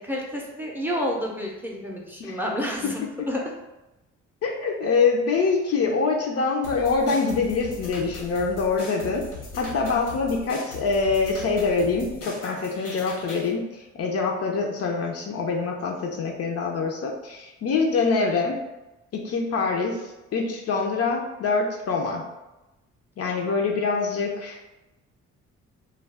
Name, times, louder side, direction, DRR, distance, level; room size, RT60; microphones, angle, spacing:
voice 1, 0.1-3.4, equal, 5° right, -2 dB, 0.5 m, -29 dB
voice 2, 4.4-9.3 9.6-18.6 19.1-20.0 20.3-22.2 23.2-24.7, left 4 dB, 55° left, 1 dB, 0.5 m, -25 dB
sound 1, 6.6-13.5, left 3 dB, 80° left, 1.0 m, -39 dB
2.3 x 2.2 x 3.3 m, 1.0 s
cardioid pair, 90°, 30 cm